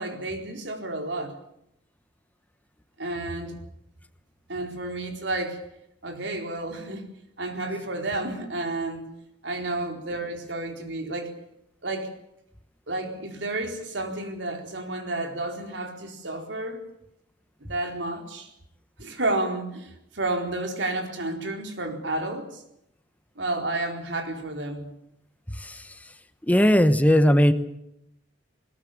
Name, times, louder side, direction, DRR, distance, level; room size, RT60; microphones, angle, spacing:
voice 1, 0.0-1.4 3.0-3.6 4.5-5.6 6.0-7.1 7.4-9.0 9.4-11.3 11.8-12.1 12.9-16.8 17.6-18.5 19.0-22.6 23.4-24.9, right 2 dB, 85° right, 4 dB, 4.4 m, -31 dB
voice 2, 26.5-27.5, equal, 10° left, 10 dB, 1.1 m, -18 dB
21.0 x 20.0 x 8.7 m, 0.79 s
head